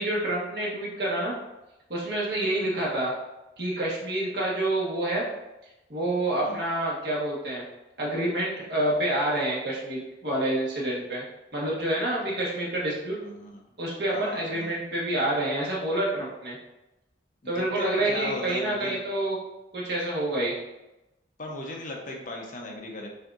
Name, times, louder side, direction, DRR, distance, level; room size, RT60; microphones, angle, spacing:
voice 1, 0.0-1.3 1.9-3.1 3.6-5.2 5.9-7.6 8.0-11.2 11.5-13.2 13.8-16.6 17.5-19.4 19.7-20.5, right 1 dB, 60° right, -5 dB, 1.3 m, -28 dB
voice 2, 13.2-13.6 14.1-14.8 17.4-19.0 21.4-23.1, left 1 dB, 45° left, 0 dB, 0.7 m, -37 dB
5.7 x 2.7 x 2.5 m, 0.96 s
head